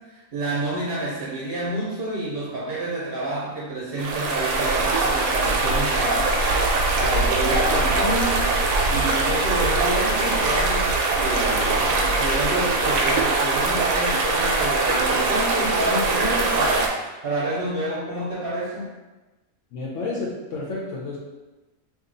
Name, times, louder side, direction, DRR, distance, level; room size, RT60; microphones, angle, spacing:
voice 1, 0.3-6.3 6.9-8.5 8.9-16.9 17.2-18.9, right 1 dB, 50° right, -6 dB, 0.8 m, -28 dB
sound 1, 4.0-16.9, right 3 dB, 85° right, 1.0 m, -22 dB
voice 2, 19.7-21.2, left 3 dB, 65° left, -3 dB, 0.8 m, -30 dB
2.7 x 2.3 x 3.8 m, 1.1 s
omnidirectional pair, 1.5 m